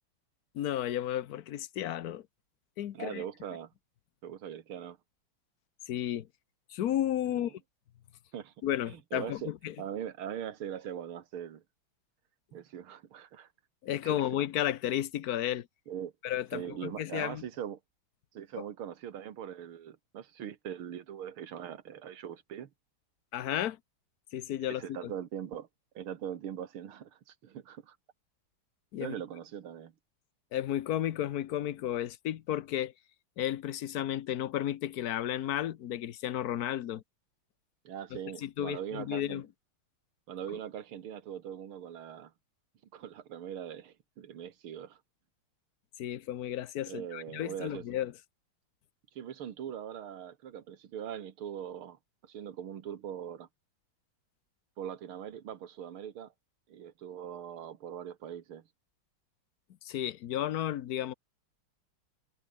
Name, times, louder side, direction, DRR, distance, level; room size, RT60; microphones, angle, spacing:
voice 1, 0.5-2.3 2.8-3.2 5.9-6.3 6.7-7.6 8.6-9.7 13.8-15.7 16.2-17.4 23.3-23.8 24.3-25.1 28.9-29.1 30.5-32.9 33.4-37.0 38.4-39.5 46.0-48.1 59.8-61.1, left 12 dB, 60° left, 1.1 m, -33 dB
voice 2, 2.9-3.7 4.2-5.0 7.3-7.5 8.3-8.5 8.9-9.5 9.8-11.6 12.5-13.5 14.0-14.2 15.9-16.1 16.5-17.8 18.3-22.7 24.7-25.7 26.0-28.0 29.0-29.9 37.8-39.4 40.3-42.3 42.9-45.0 46.9-47.8 49.2-53.5 54.8-56.3 56.7-58.6, right 9 dB, 75° right, 2.3 m, -41 dB
omnidirectional pair, 2.3 m